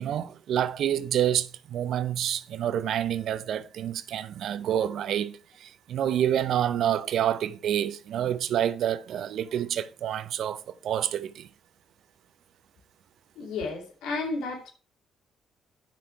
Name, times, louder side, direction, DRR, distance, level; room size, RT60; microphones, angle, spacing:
voice 1, 0.0-11.5, right 10 dB, 70° right, 0.7 m, -28 dB
voice 2, 13.4-14.7, left 3 dB, 80° left, 2.7 m, -32 dB
10.5 x 6.2 x 4.6 m
hypercardioid pair, 50°, 0 cm